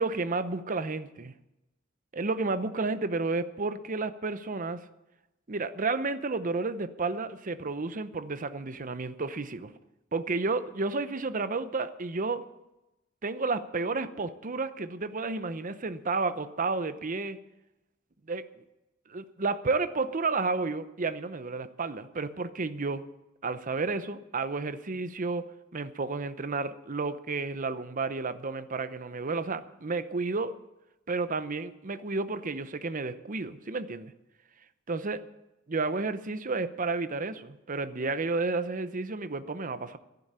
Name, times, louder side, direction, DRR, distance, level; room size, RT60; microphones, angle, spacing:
voice 1, 0.0-1.3 2.1-4.9 5.5-9.7 10.1-12.4 13.2-17.4 18.3-18.5 19.1-23.0 23.4-30.6 31.1-34.1 34.9-35.2 35.7-40.0, right 3 dB, 45° right, 12 dB, 0.8 m, -31 dB
11.0 x 11.0 x 8.2 m, 0.95 s
head